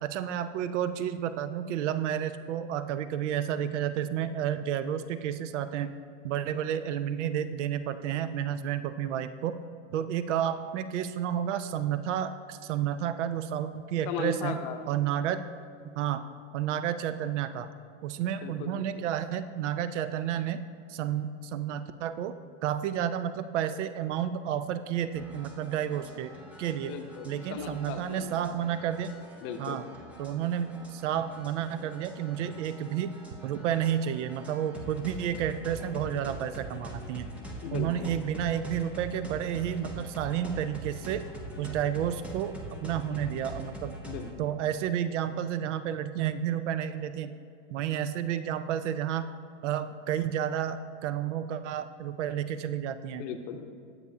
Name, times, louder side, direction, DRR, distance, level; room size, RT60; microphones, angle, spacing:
voice 1, 0.0-5.9 6.2-9.6 9.9-14.6 14.9-15.4 16.0-16.2 16.5-17.7 18.0-20.6 20.9-22.3 22.6-26.3 26.6-26.9 27.3-29.1 29.6-29.8 30.2-33.1 33.4-37.3 37.7-41.2 41.6-44.0 44.4-47.4 47.7-49.3 49.6-53.3, right 10 dB, 75° right, 12 dB, 0.5 m, -31 dB
voice 2, 14.1-14.8 18.4-19.0 26.8-28.5 29.4-29.8 37.6-38.1 44.0-44.5 53.1-53.6, left 7 dB, 40° left, 6 dB, 0.7 m, -37 dB
sound 1, 25.1-44.3, right 1 dB, 5° right, 0.3 m, -44 dB
8.6 x 8.3 x 2.7 m, 2.3 s
hypercardioid pair, 135°, 37 cm